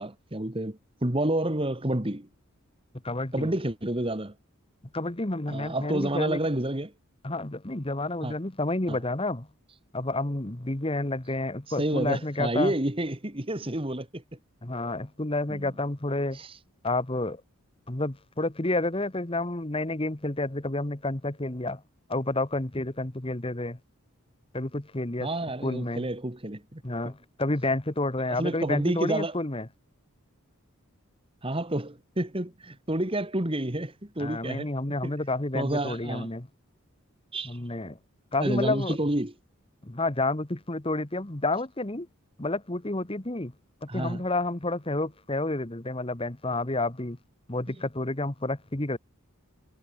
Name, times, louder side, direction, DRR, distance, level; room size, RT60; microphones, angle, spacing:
voice 1, 0.0-2.3 3.3-4.4 5.5-6.9 8.2-8.3 8.9-9.0 11.8-14.2 15.5-15.7 16.3-16.5 25.2-26.8 28.3-29.3 31.4-34.7 35.0-35.1 35.5-36.3 37.3-37.6 38.4-39.3 43.9-44.2, right 1 dB, 25° right, 2.0 m, -29 dB
voice 2, 3.0-3.5 4.9-6.4 7.2-9.5 9.9-12.7 14.6-16.4 16.8-17.4 17.9-21.8 22.1-23.8 24.5-25.3 25.6-26.1 26.8-29.7 34.2-36.5 37.4-38.0 38.3-39.0 39.8-42.1 42.4-43.5 43.8-47.2 47.5-49.0, left 2 dB, 25° left, 1.3 m, -30 dB
head